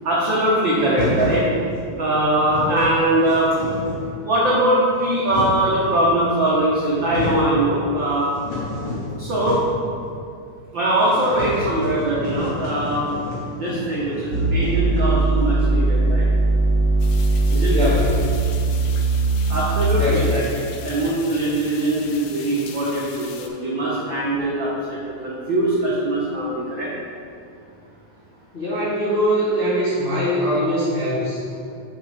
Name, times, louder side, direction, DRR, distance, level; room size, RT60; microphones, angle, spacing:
voice 1, 0.0-1.5 2.0-3.5 4.2-8.3 9.2-9.6 10.7-13.1 13.5-16.2 17.5-17.8 19.5-20.4 20.8-26.9, right 1 dB, 75° right, -6 dB, 1.1 m, -21 dB
sound 1, 0.9-1.4 2.1-2.2 2.3-2.9 3.3-4.1 4.8-5.8 6.5-6.6 6.9-7.5 7.9-9.9 10.1-10.2 10.5-10.6 11.0-15.5, left 2 dB, 60° left, 2.1 m, -30 dB
sound 2, 14.3-20.3, right 2 dB, 55° right, 1.6 m, -19 dB
sound 3, 17.0-23.5, left 6 dB, 80° left, 1.9 m, -40 dB
voice 2, 17.6-18.2 19.9-20.5 28.5-31.4, equal, 35° left, -11 dB, 0.9 m, -22 dB
6.0 x 5.2 x 5.0 m, 2.4 s
omnidirectional pair, 3.6 m